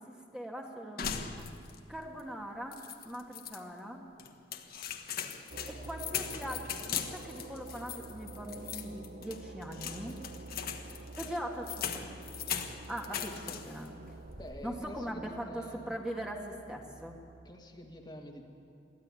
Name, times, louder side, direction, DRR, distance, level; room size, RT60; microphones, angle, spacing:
voice 1, 0.0-1.5 1.9-4.0 5.7-10.2 11.2-12.1 12.9-14.0 14.6-17.2, equal, 5° right, 0 dB, 1.9 m, -41 dB
sound 1, 1.0-1.9 2.2-2.3 2.7-3.6 4.2-13.9 14.2-14.7, left 8 dB, 55° left, 1.4 m, -40 dB
sound 2, 5.5-17.5, right 3 dB, 50° right, 0.8 m, -49 dB
voice 2, 14.4-15.9 17.4-18.4, equal, 25° left, 2 dB, 2.0 m, -47 dB
23.0 x 15.0 x 9.8 m, 2.4 s
head